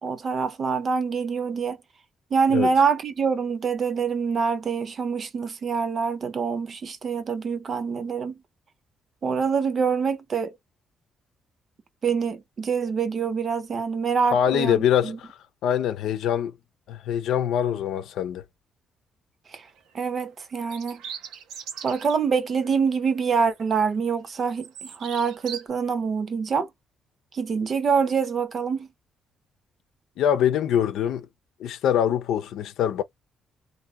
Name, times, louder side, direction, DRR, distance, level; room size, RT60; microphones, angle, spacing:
voice 1, 0.0-1.8 2.3-8.4 9.2-10.5 12.0-14.8 15.0-15.2 19.5-19.7 19.9-21.0 21.8-26.7 27.3-28.9, right 5 dB, 45° right, 0.8 m, -25 dB
voice 2, 14.3-16.5 16.9-18.4 30.2-31.3 31.6-33.0, left 9 dB, 80° left, 0.6 m, -24 dB
sound 1, 19.5-19.8 20.6-22.2 22.6-22.8 23.2-24.0 24.3-25.6, right 8 dB, 85° right, 0.8 m, -40 dB
2.9 x 2.7 x 3.7 m
cardioid pair, 90°, 0 cm